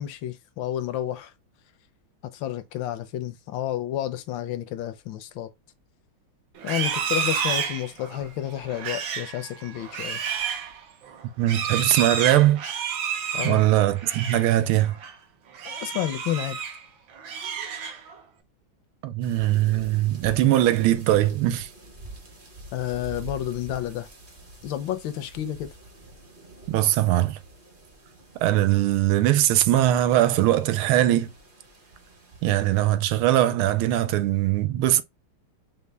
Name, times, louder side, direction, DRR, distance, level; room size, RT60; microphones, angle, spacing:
voice 1, 0.0-1.3 2.3-5.5 6.6-10.2 13.3-13.6 15.6-16.6 22.7-24.1 24.6-25.7, left 12 dB, 75° left, 1.3 m, -30 dB
Livestock farm animals working animals, 6.6-14.5 14.8-15.1 15.5-16.8 17.1-18.2, right 7 dB, 70° right, 1.5 m, -30 dB
voice 2, 11.4-12.6 13.4-15.0 19.0-21.7 26.7-27.4 28.4-31.3 32.4-35.0, right 13 dB, 90° right, 1.5 m, -21 dB
sound 1, 19.2-33.0, right 2 dB, 35° right, 0.9 m, -46 dB
5.3 x 2.2 x 3.3 m
omnidirectional pair, 2.3 m